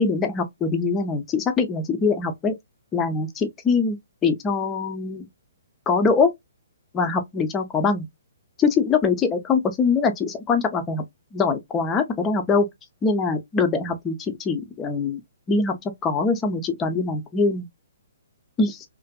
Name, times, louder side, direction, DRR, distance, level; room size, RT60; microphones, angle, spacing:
voice 1, 0.0-2.5 2.9-4.0 4.2-5.3 5.9-6.3 6.9-8.0 8.6-11.0 11.3-12.7 13.0-14.1 14.4-15.2 15.5-15.8 16.0-17.7 18.6-18.8, left 4 dB, 15° left, 0.5 m, -23 dB
2.5 x 2.5 x 2.2 m
hypercardioid pair, 155°, 0 cm